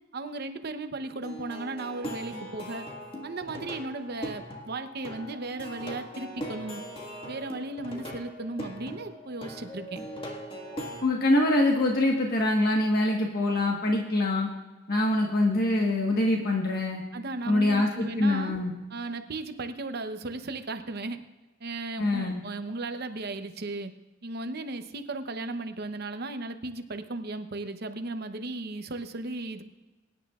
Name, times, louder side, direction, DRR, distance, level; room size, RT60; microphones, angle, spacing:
voice 1, 0.1-2.9 3.2-6.8 7.2-10.0 17.1-18.6 18.9-21.2 21.6-23.9 24.2-29.7, right 2 dB, 55° right, 8 dB, 0.8 m, -36 dB
Plucked string instrument, 1.2-11.0, equal, 30° left, 1.7 m, -40 dB
voice 2, 11.0-14.5 14.9-17.0 17.5-17.9 18.2-18.7 22.0-22.4, left 1 dB, 50° left, 0 dB, 1.4 m, -24 dB
23.0 x 10.5 x 2.4 m, 1.2 s
head